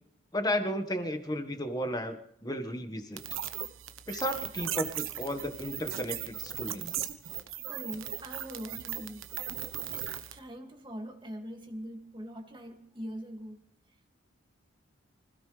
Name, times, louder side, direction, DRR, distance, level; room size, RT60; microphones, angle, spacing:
voice 1, 0.3-2.2 2.4-3.2 4.1-7.1, left 1 dB, 20° left, 7 dB, 1.7 m, -33 dB
sound 1, 3.2-10.4, right 11 dB, 80° right, 1.2 m, -38 dB
voice 2, 7.6-13.6 13.9-14.1, equal, 25° right, 3 dB, 2.4 m, -43 dB
25.5 x 16.5 x 3.5 m, 0.67 s
head